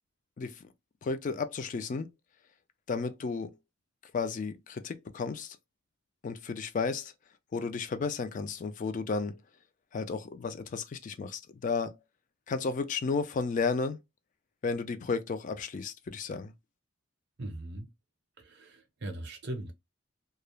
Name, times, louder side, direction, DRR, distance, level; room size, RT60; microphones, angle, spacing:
voice 1, 0.4-0.7 1.0-2.1 2.9-3.5 4.0-5.6 6.2-7.1 7.5-9.4 9.9-12.0 12.5-14.0 14.6-16.5, left 4 dB, 40° left, 0.3 m, -33 dB
voice 2, 17.4-17.9 18.4-19.7, right 1 dB, 55° right, 0.6 m, -39 dB
2.3 x 2.0 x 3.0 m
head